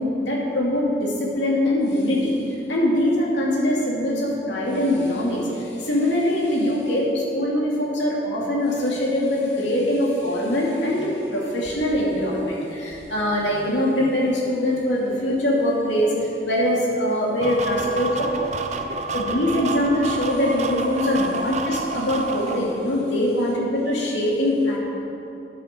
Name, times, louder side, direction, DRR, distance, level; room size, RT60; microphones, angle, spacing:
voice 1, 0.0-18.3 19.1-24.8, left 1 dB, 75° left, -4 dB, 2.8 m, -23 dB
sound 1, 17.4-22.6, right 3 dB, 40° right, 0.7 m, -29 dB
13.5 x 10.0 x 4.5 m, 3.0 s
head